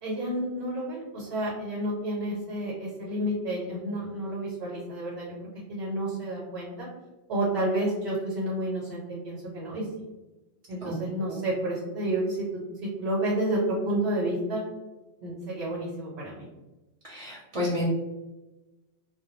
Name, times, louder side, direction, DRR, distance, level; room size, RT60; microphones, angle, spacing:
voice 1, 0.0-5.3 5.7-6.9 7.3-9.9 10.7-14.6 15.2-16.5, right 1 dB, 75° right, -4 dB, 0.9 m, -30 dB
voice 2, 17.1-17.8, left 1 dB, 35° right, -6 dB, 0.6 m, -30 dB
2.2 x 2.1 x 2.9 m, 1.1 s
omnidirectional pair, 1.1 m